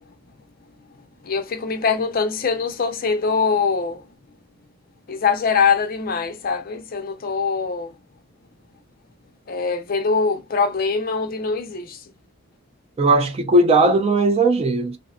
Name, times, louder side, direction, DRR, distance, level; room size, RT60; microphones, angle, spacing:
voice 1, 1.2-4.0 5.1-7.9 9.5-12.0, left 5 dB, 40° left, 0.4 m, -23 dB
voice 2, 13.0-15.0, right 2 dB, 25° right, 0.3 m, -17 dB
2.6 x 2.1 x 2.5 m
head